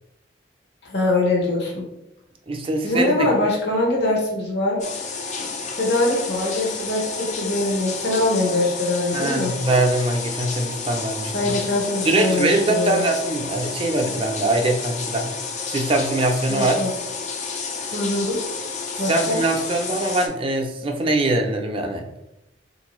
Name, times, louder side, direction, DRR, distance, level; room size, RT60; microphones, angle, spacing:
voice 1, 0.8-1.9 2.8-4.8 5.7-9.5 11.3-13.0 16.5-16.9 17.9-18.4 19.0-19.4, left 2 dB, 60° left, -2 dB, 0.8 m, -23 dB
voice 2, 2.5-3.3 9.1-11.5 12.0-15.3 15.7-16.7 19.1-22.0, right 2 dB, 30° right, 3 dB, 0.4 m, -22 dB
sound 1, 4.8-20.3, left 5 dB, 35° left, 0.4 m, -31 dB
3.8 x 2.6 x 2.9 m, 0.88 s
head